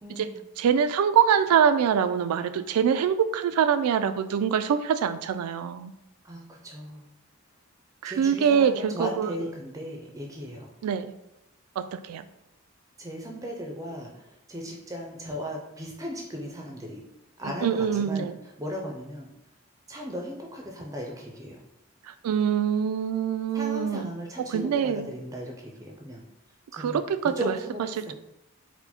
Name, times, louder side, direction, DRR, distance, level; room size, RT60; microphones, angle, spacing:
voice 1, 0.0-0.4 6.2-7.1 8.0-10.7 13.0-17.0 17.4-18.3 18.6-19.3 19.9-21.6 23.5-26.2 26.7-27.0 27.4-28.1, equal, 15° right, 1 dB, 0.4 m, -37 dB
voice 2, 0.6-5.9 8.0-9.3 10.8-11.1 11.8-12.2 17.4-18.4 22.1-24.1 24.4-25.1 26.7-27.6 28.0-28.1, right 7 dB, 90° right, 15 dB, 0.3 m, -24 dB
4.4 x 2.1 x 4.2 m, 0.88 s
head